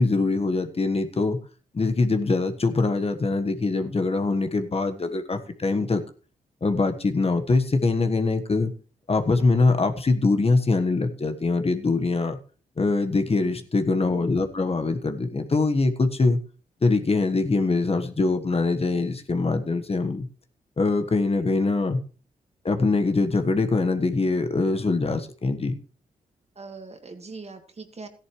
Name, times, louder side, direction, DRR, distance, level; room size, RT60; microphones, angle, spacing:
voice 1, 0.0-1.4 1.7-6.0 6.6-8.7 9.1-12.4 12.8-16.4 16.8-20.3 20.8-22.0 22.6-25.8, left 3 dB, 40° left, 7 dB, 1.4 m, -23 dB
voice 2, 26.6-28.1, right 4 dB, 40° right, 6 dB, 1.9 m, -41 dB
14.0 x 10.5 x 3.2 m, 0.38 s
cardioid pair, 55°, 16 cm